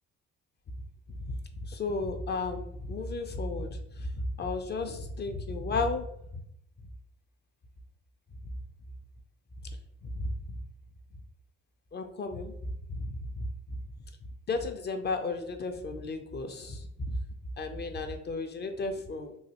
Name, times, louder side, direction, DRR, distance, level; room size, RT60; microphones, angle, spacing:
voice 1, 1.6-6.1 6.3-6.4 9.6-9.8 10.1-10.3 11.9-13.5 14.5-17.2 17.6-19.4, left 3 dB, 35° left, 6 dB, 0.5 m, -34 dB
3.1 x 2.2 x 2.9 m, 0.75 s
cardioid pair, 90°, 30 cm